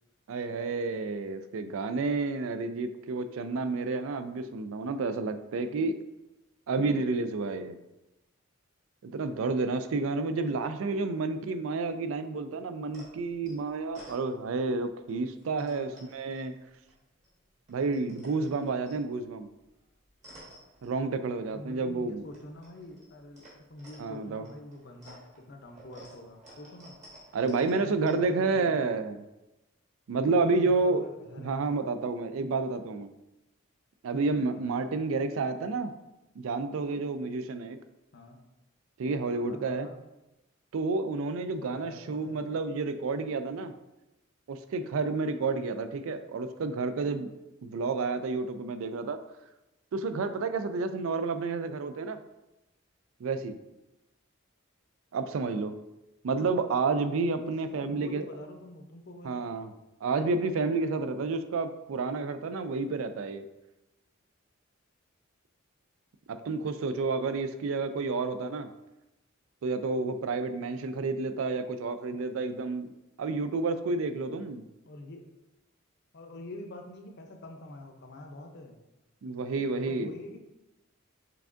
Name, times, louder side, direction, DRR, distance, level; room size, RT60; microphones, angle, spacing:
voice 1, 0.3-5.9 6.7-7.8 9.0-16.5 17.7-19.5 20.8-22.2 24.0-24.5 27.3-29.2 30.1-31.0 31.4-33.1 34.0-35.9 36.4-37.8 39.0-39.9 40.7-43.7 44.5-47.3 47.6-49.2 49.9-52.2 53.2-53.6 55.1-55.7 56.2-58.2 59.2-59.7 60.0-63.5 66.3-68.7 69.6-72.9 73.2-74.6 79.2-80.1, right 3 dB, 75° right, 10 dB, 0.4 m, -30 dB
sound 1, 12.9-14.7 15.1-17.3 17.6-21.5 21.8-28.1, right 1 dB, 35° right, 1.3 m, -54 dB
voice 2, 15.5-16.0 21.5-27.0 27.6-28.9 30.2-32.0 34.4-34.9 38.1-38.4 39.3-40.0 41.5-42.5 45.4-45.6 55.3-55.7 57.4-59.4 68.0-68.4 74.8-75.3 76.1-78.8 79.8-80.4, left 1 dB, 55° left, 4 dB, 0.6 m, -46 dB
5.8 x 3.4 x 2.5 m, 0.97 s
head